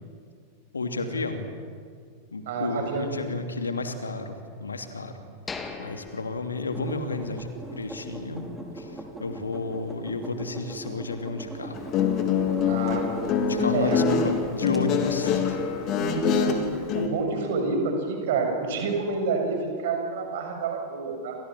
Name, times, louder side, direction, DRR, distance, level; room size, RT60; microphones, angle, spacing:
voice 1, 0.7-1.5 2.3-4.3 4.6-5.1 5.8-8.5 8.7-11.8 13.4-15.6, left 3 dB, 75° left, 7 dB, 2.8 m, -31 dB
voice 2, 2.5-3.1 12.7-13.4 13.7-14.0 15.9-16.6 16.9-21.4, right 4 dB, 55° right, 3 dB, 7.1 m, -28 dB
sound 1, 5.5-7.4 7.7-7.8 8.3-8.5, left 4 dB, 15° left, 2.6 m, -40 dB
sound 2, 6.7-14.8, right 1 dB, 5° right, 5.1 m, -40 dB
Guitar, 11.7-17.1, left 6 dB, 35° left, 3.4 m, -25 dB
29.0 x 27.0 x 7.7 m, 2.1 s
figure-of-eight pair, 90°, 0 cm